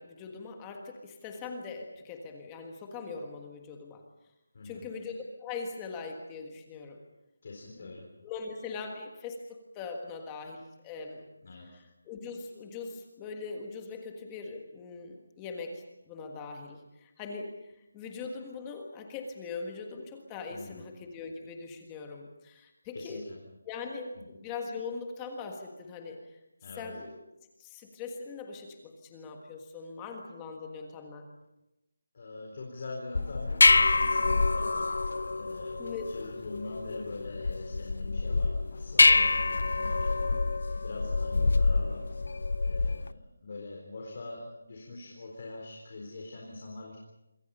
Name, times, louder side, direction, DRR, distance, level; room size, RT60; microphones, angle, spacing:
voice 1, 0.0-4.0 4.6-7.0 7.8-11.2 11.6-11.7 12.0-23.2 23.6-26.4 26.8-27.3 27.6-31.3 35.8-36.0, left 4 dB, 10° left, 3 dB, 1.6 m, -41 dB
voice 2, 4.5-4.9 7.4-8.1 11.4-11.7 20.5-20.8 22.9-23.4 24.1-24.3 26.6-26.9 32.1-40.4 40.8-42.0 42.6-47.0, left 2 dB, 30° left, -1 dB, 4.2 m, -43 dB
sound 1, 33.1-43.1, left 3 dB, 50° left, 0.8 m, -26 dB
27.0 x 24.0 x 5.5 m, 0.90 s
figure-of-eight pair, 180°, 0 cm